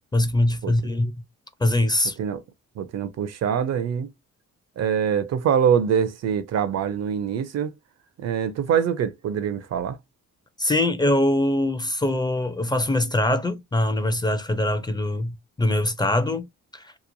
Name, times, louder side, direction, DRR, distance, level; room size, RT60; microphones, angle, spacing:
voice 1, 0.1-1.2 1.6-2.2 10.6-17.0, left 1 dB, 15° left, 0.4 m, -23 dB
voice 2, 2.8-4.1 4.8-7.7 8.2-10.0, right 8 dB, 60° right, 0.5 m, -24 dB
2.9 x 2.2 x 2.5 m
cardioid pair, 90°, 30 cm